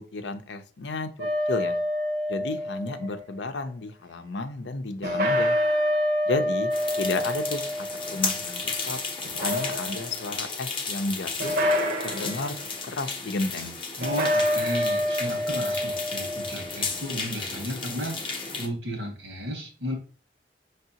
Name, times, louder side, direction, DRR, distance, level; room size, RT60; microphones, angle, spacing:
voice 1, 0.0-1.8 2.3-5.6 6.3-6.7 7.0-9.0 9.4-11.5 12.0-12.5 12.8-13.7, left 3 dB, 75° left, 8 dB, 0.6 m, -32 dB
sound 1, 1.2-3.2 5.0-8.8 9.2-10.2 11.4-12.5 14.0-16.7, left 1 dB, 60° right, 0.9 m, -27 dB
sound 2, 6.7-18.7, left 4 dB, 30° left, 0.7 m, -34 dB
voice 2, 14.0-19.9, equal, 85° right, 2 dB, 1.8 m, -34 dB
5.6 x 3.3 x 2.8 m, 0.38 s
head